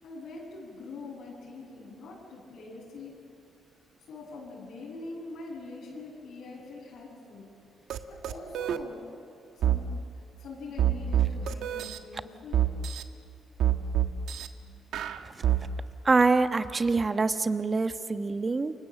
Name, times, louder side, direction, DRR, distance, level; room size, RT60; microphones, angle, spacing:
voice 1, 0.0-3.2 4.1-7.5 8.1-9.1 9.5-9.9 10.4-12.7 14.3-14.8, left 3 dB, 75° left, -5 dB, 7.6 m, -43 dB
sound 1, 7.9-8.8 9.6-9.8 10.8-12.0 12.5-13.0 13.6-14.5 14.9-15.6, right 11 dB, 80° right, 1.3 m, -26 dB
voice 2, 16.0-18.7, right 3 dB, 30° right, 10 dB, 1.1 m, -25 dB
28.5 x 24.0 x 7.6 m, 2.7 s
cardioid pair, 90°, 0 cm